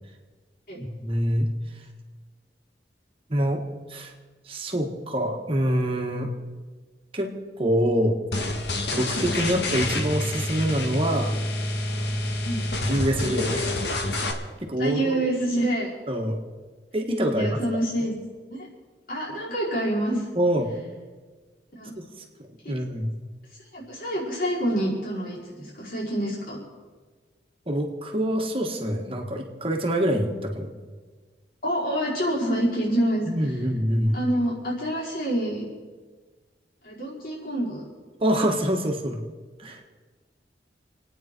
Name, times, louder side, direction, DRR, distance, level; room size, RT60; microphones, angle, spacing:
voice 1, 1.0-1.5 3.3-3.6 3.9-4.1 4.5-6.3 7.1-7.3 7.6-8.2 8.9-11.3 12.8-13.7 14.7-15.2 16.1-16.4 16.9-17.6 20.4-20.7 22.0-22.1 22.7-23.1 27.7-30.7 33.3-34.2 38.2-39.2 39.6-39.8, equal, 30° right, 2 dB, 1.8 m, -25 dB
sound 1, 8.3-14.3, left 1 dB, 70° left, 1.8 m, -27 dB
voice 2, 14.8-15.9 17.3-18.2 18.5-18.7 19.1-20.3 21.8-21.9 22.6-22.7 23.6-26.6 31.6-33.3 34.1-35.7 36.8-37.8, right 1 dB, 55° left, -5 dB, 5.1 m, -27 dB
28.5 x 9.4 x 4.6 m, 1.4 s
head